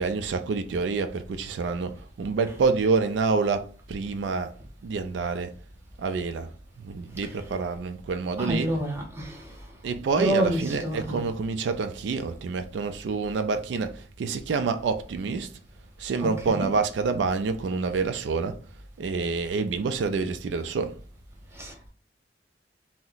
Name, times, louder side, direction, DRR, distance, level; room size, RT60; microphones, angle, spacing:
voice 1, 0.0-4.5 4.8-5.5 6.0-6.5 6.8-8.8 9.8-15.5 16.0-18.6 19.0-21.0, right 4 dB, 90° right, 0.3 m, -27 dB
voice 2, 8.4-9.7 10.1-11.2 16.2-16.7 21.5-21.9, right 1 dB, 15° right, 0.8 m, -29 dB
2.8 x 2.0 x 3.8 m
head